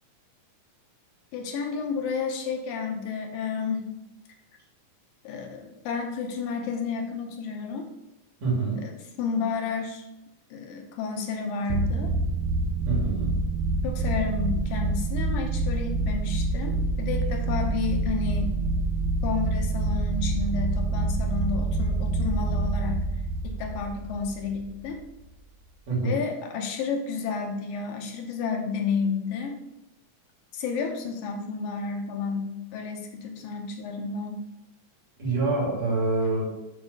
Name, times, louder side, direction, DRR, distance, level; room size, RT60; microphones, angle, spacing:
voice 1, 1.3-3.8 5.2-7.9 8.8-10.0 10.5-12.1 13.8-18.5 19.2-23.1 23.4-25.0 26.0-29.6 30.5-34.4, left 5 dB, 80° left, 3 dB, 2.6 m, -31 dB
voice 2, 8.4-8.8 12.9-13.3 25.9-26.2 35.2-36.4, right 3 dB, 50° right, -5 dB, 3.6 m, -26 dB
sound 1, 11.7-25.0, right 2 dB, 80° right, 2.1 m, -27 dB
8.4 x 3.6 x 6.6 m, 0.92 s
omnidirectional pair, 4.0 m